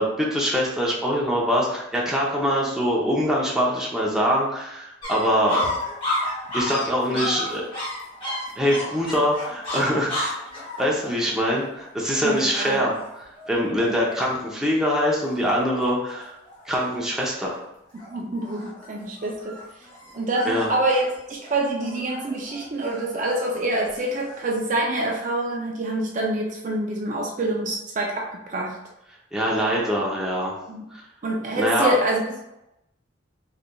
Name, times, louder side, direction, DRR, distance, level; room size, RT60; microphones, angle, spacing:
voice 1, 0.0-5.6 6.5-7.7 8.6-10.3 10.8-12.9 13.5-16.3 16.7-17.6 20.5-20.7 29.3-30.5 30.9-31.0 31.5-31.9, equal, 5° right, -4 dB, 0.6 m, -23 dB
sound 1, 5.0-14.5 14.9-15.0 15.2-15.9 16.2-16.8 17.3-17.6 18.0-24.5, left 1 dB, 30° left, 1.3 m, -33 dB
voice 2, 12.2-12.8 18.1-19.6 20.1-28.8 30.7-30.9 31.2-32.4, right 1 dB, 40° right, 0 dB, 0.4 m, -26 dB
3.8 x 3.2 x 2.2 m, 0.89 s
head